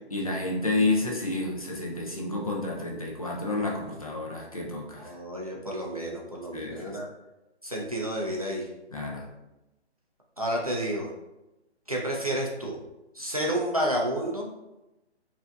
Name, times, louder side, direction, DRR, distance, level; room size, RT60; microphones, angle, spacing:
voice 1, 0.1-5.1 6.5-7.0 8.9-9.3, left 2 dB, 35° left, -2 dB, 0.5 m, -30 dB
voice 2, 5.0-7.1 7.6-8.7 10.4-11.1 11.9-12.8 13.1-14.5, right 1 dB, 35° right, -2 dB, 0.4 m, -30 dB
4.9 x 2.6 x 2.3 m, 0.97 s
hypercardioid pair, 160°, 34 cm